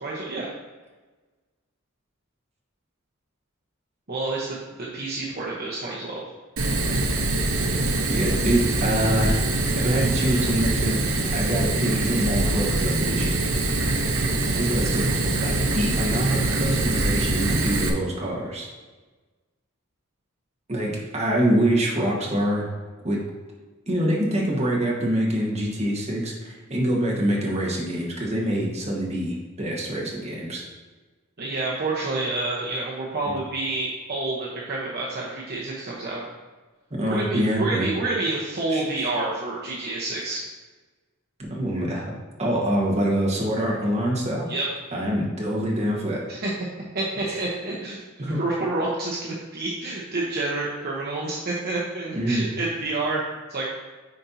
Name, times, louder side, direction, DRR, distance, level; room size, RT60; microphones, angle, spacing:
voice 1, 0.0-0.5 4.1-6.2 31.4-36.2 37.1-40.4 44.5-44.7 46.3-46.5 46.9-53.7, right 2 dB, 50° right, -5 dB, 1.0 m, -28 dB
Fire, 6.6-17.9, right 2 dB, 80° right, 0.9 m, -24 dB
voice 2, 8.1-9.4 9.8-13.3 14.6-15.1 15.4-18.7 20.7-22.7 23.0-23.2 23.9-30.6 37.0-37.9 38.7-39.1 40.3-40.4 41.5-42.1 42.4-44.5 44.9-46.2 47.3-47.4 48.2-48.4 52.1-52.5, right 1 dB, 35° right, -3 dB, 1.4 m, -25 dB
9.5 x 4.3 x 2.7 m, 1.3 s
head